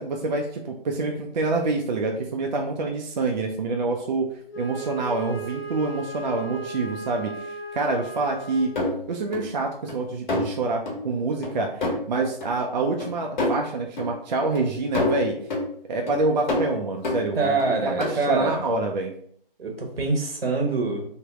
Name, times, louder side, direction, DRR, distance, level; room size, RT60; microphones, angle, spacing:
voice 1, 0.0-4.3 4.6-8.7 9.1-11.7 12.1-15.4 15.9-17.6 17.8-19.1, right 3 dB, 50° right, 1 dB, 0.4 m, -26 dB
Wind instrument woodwind instrument, 4.5-9.1, right 2 dB, 85° left, 0.8 m, -36 dB
sound 1, 8.8-9.4 9.9-10.0 10.3-10.6 10.9-11.0 11.4-11.5 11.8-12.0 12.4-12.5 13.0-13.1 13.4-13.6 14.0-14.1 14.6-14.7 14.9-15.7 16.1-16.2 16.5-17.7 18.0-18.1, left 2 dB, 50° left, 1.2 m, -27 dB
voice 2, 17.4-18.6 19.6-21.1, right 3 dB, 80° right, 2 dB, 1.1 m, -25 dB
3.4 x 2.1 x 3.4 m, 0.62 s
hypercardioid pair, 155°, 29 cm